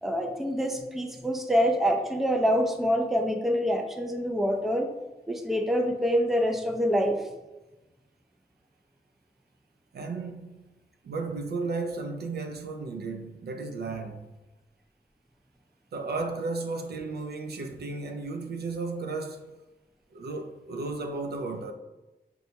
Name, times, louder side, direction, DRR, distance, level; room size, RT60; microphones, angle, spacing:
voice 1, 0.0-4.9 5.3-7.2, equal, ahead, 0.4 m, -26 dB
voice 2, 9.9-10.6 11.0-14.3 15.9-19.5 20.1-21.7, right 3 dB, 70° right, 0.4 m, -34 dB
4.2 x 2.2 x 2.8 m
cardioid pair, 65°, 17 cm